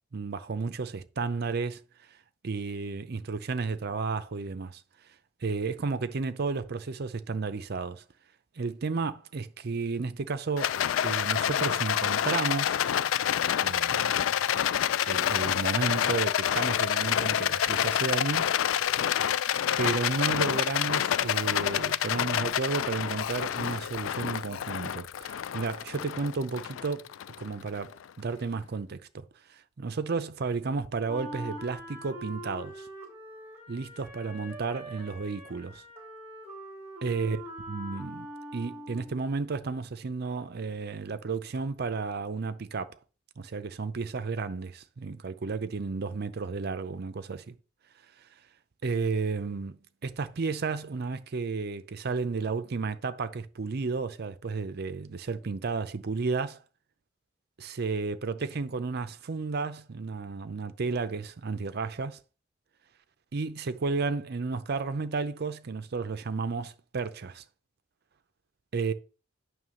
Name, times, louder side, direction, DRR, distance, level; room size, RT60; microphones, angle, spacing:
voice 1, 0.1-1.8 2.4-4.8 5.4-8.0 8.6-10.8 11.0-12.8 13.6-14.4 15.1-18.8 19.8-27.1 27.4-27.9 28.2-29.2 29.5-32.9 33.7-35.8 37.0-37.4 37.7-43.0 43.4-47.5 48.8-56.6 57.6-62.2 63.3-67.4 68.7-68.9, right 4 dB, 55° right, 0.6 m, -32 dB
Rattle, 10.6-27.9, left 10 dB, 75° left, 0.3 m, -28 dB
Wind instrument woodwind instrument, 31.1-39.2, equal, 15° right, 2.7 m, -43 dB
9.2 x 3.1 x 6.3 m
head